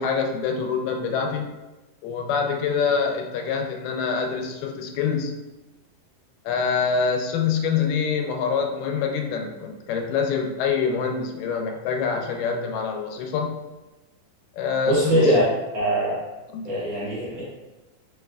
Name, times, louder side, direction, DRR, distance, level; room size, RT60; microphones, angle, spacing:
voice 1, 0.0-1.5 2.0-5.3 6.5-13.6 14.5-15.4 16.5-16.7, left 6 dB, 85° left, 3 dB, 2.2 m, -25 dB
voice 2, 14.9-15.4 15.7-16.2 16.6-17.4, equal, 60° right, -8 dB, 1.9 m, -21 dB
4.9 x 3.2 x 2.3 m, 1.1 s
omnidirectional pair, 3.8 m